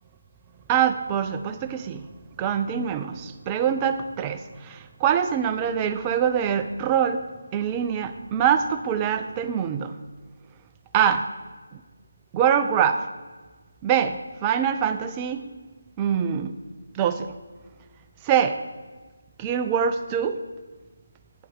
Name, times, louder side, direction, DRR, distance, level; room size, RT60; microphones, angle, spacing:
voice 1, 0.7-2.0 2.4-7.3 7.5-9.9 10.9-11.2 12.3-13.0 13.8-15.4 16.0-16.5 17.0-17.3 18.2-18.6 19.4-20.4, right 8 dB, 15° right, 8 dB, 0.3 m, -24 dB
8.8 x 4.6 x 6.3 m, 1.3 s
figure-of-eight pair, 155°, 0 cm